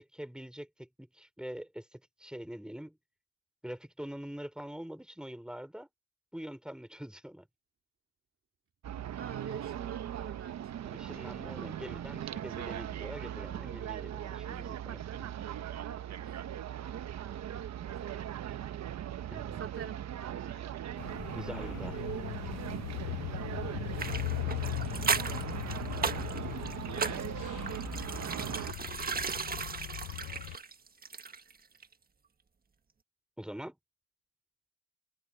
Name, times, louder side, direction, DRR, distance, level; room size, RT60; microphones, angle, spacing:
voice 1, 0.0-3.0 3.6-5.9 6.3-7.5 10.9-15.3 19.3-19.6 21.3-22.0 33.4-33.8, equal, 5° right, 5.2 m, -44 dB
sound 1, 8.8-28.7, right 10 dB, 60° right, 1.2 m, -39 dB
voice 2, 9.2-11.0 14.6-15.5 16.2-16.5 17.2-18.6 19.6-20.9 21.3-21.6 23.0-23.2, right 7 dB, 45° right, 2.3 m, -47 dB
sound 2, 21.0-30.6, left 22 dB, 90° left, 0.5 m, -39 dB
sound 3, 24.0-31.6 31.8-31.9, right 5 dB, 30° right, 1.5 m, -36 dB
cardioid pair, 90°, 30 cm